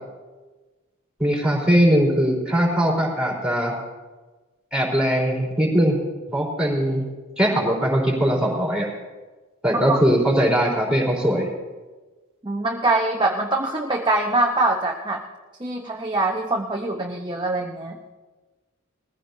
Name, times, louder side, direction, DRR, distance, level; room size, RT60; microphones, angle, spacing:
voice 1, 1.2-3.7 4.7-6.0 6.3-7.0 7.4-8.9 9.6-11.5, equal, 5° right, -4 dB, 3.9 m, -20 dB
voice 2, 12.4-15.2 15.6-18.0, right 2 dB, 20° right, 0 dB, 0.9 m, -23 dB
21.0 x 15.0 x 2.7 m, 1.3 s
head